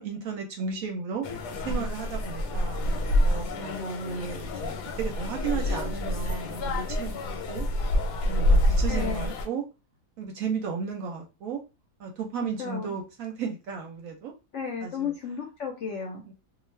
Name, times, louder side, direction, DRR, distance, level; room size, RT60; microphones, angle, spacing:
voice 1, 0.0-1.4 1.6-7.2 7.5-7.7 8.2-9.6 10.2-11.6 12.0-14.3 14.8-15.1 16.3-16.4, right 5 dB, 70° right, 2 dB, 0.9 m, -34 dB
sound 1, 1.2-9.5, left 1 dB, 90° left, 1.2 m, -27 dB
voice 2, 8.9-9.3 12.6-12.9 14.5-16.2, left 6 dB, 65° left, 1 dB, 0.7 m, -33 dB
2.4 x 2.4 x 3.1 m, 0.29 s
omnidirectional pair, 1.7 m